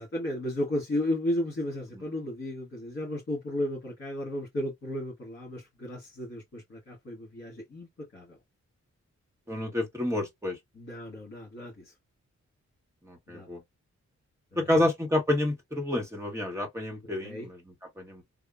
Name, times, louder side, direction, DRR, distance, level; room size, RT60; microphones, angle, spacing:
voice 1, 0.0-8.4 10.8-11.9 13.3-13.5 14.5-14.7 17.2-17.5, left 1 dB, 45° left, 1.7 m, -34 dB
voice 2, 9.5-10.6 13.0-13.6 14.6-18.2, left 1 dB, 10° right, 1.1 m, -29 dB
3.5 x 2.1 x 2.3 m
wide cardioid pair, 150°, 29 cm